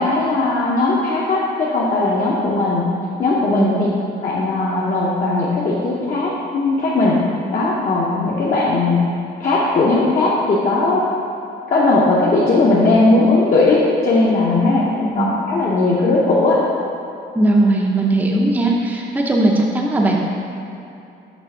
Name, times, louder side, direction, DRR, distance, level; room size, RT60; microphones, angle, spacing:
voice 1, 0.0-1.4 1.7-2.8 3.2-3.9 4.2-7.2 7.5-9.0 9.4-11.0 11.7-16.6, left 2 dB, 45° left, -6 dB, 0.8 m, -17 dB
voice 2, 3.5-3.8 14.6-14.7 15.2-15.4 17.3-20.2, right 2 dB, 10° right, -1 dB, 0.6 m, -18 dB
6.2 x 3.4 x 5.5 m, 2.7 s
cardioid pair, 125°, 18 cm